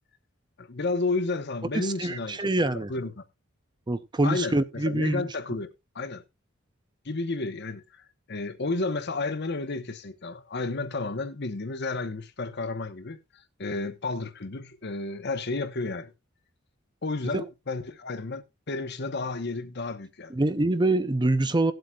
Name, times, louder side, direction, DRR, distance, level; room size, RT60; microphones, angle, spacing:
voice 1, 0.6-3.1 4.2-5.7 5.9-6.2 7.0-16.1 17.0-20.3, left 3 dB, 55° left, 1.1 m, -32 dB
voice 2, 1.7-2.9 3.9-5.3 17.3-17.4 20.3-21.7, right 2 dB, 20° right, 0.6 m, -25 dB
18.0 x 7.8 x 2.4 m
head